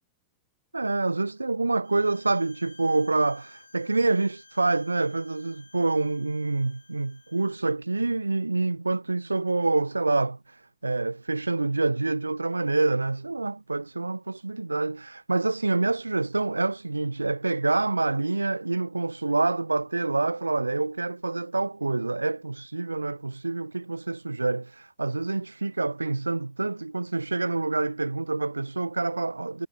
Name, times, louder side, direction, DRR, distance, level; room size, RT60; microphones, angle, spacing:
voice 1, 0.7-29.7, right 3 dB, 80° right, 0.4 m, -27 dB
Bowed string instrument, 1.8-7.6, left 3 dB, 80° left, 3.1 m, -56 dB
figure-of-eight pair, 90°, 0 cm